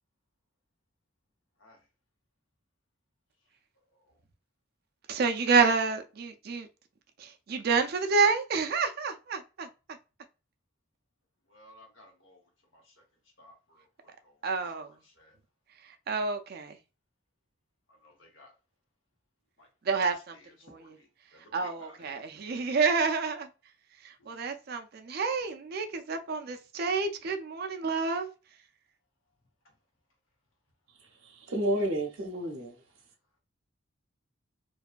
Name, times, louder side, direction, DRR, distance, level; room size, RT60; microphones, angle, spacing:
voice 1, 5.1-6.7 7.2-9.7 14.4-14.9 16.1-16.7 19.9-20.4 21.5-23.5 24.0-28.3, right 4 dB, 50° right, 0.4 m, -28 dB
voice 2, 11.5-13.0 13.4-15.3 17.9-18.5 19.6-22.2 24.2-24.3 25.2-25.3, left 1 dB, 70° left, 0.9 m, -58 dB
voice 3, 31.2-32.8, right 1 dB, 90° right, 0.6 m, -31 dB
2.6 x 2.2 x 2.4 m
head